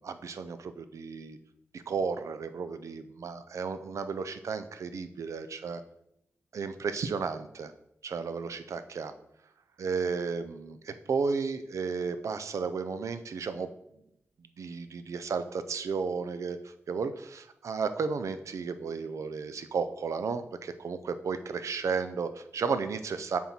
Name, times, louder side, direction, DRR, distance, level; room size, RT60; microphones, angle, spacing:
voice 1, 0.0-1.4 1.7-5.8 6.5-7.7 8.0-9.1 9.8-13.7 14.6-16.6 16.9-23.4, right 5 dB, 75° right, 11 dB, 0.5 m, -33 dB
7.2 x 4.3 x 4.4 m, 0.79 s
wide cardioid pair, 100°, 5 cm